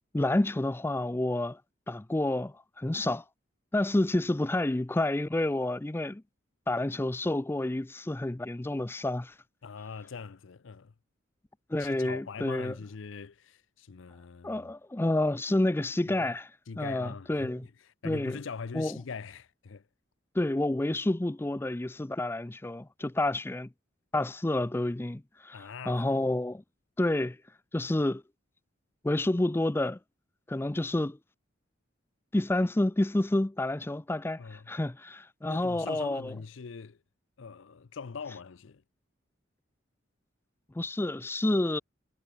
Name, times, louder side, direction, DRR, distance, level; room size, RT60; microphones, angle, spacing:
voice 1, 0.1-1.6 1.9-3.2 3.7-6.2 6.7-9.3 11.7-12.7 14.4-16.5 16.8-17.7 18.0-18.4 18.7-19.0 20.3-23.7 24.1-26.6 27.0-27.4 27.7-28.2 29.0-30.0 30.5-31.2 32.3-36.3 40.8-41.8, left 1 dB, 10° left, 0.4 m, -29 dB
voice 2, 9.6-10.9 11.8-14.7 16.1-16.3 16.7-19.9 25.5-26.1 34.4-34.7 35.4-37.0 37.4-38.8, left 5 dB, 80° left, 0.6 m, -42 dB
head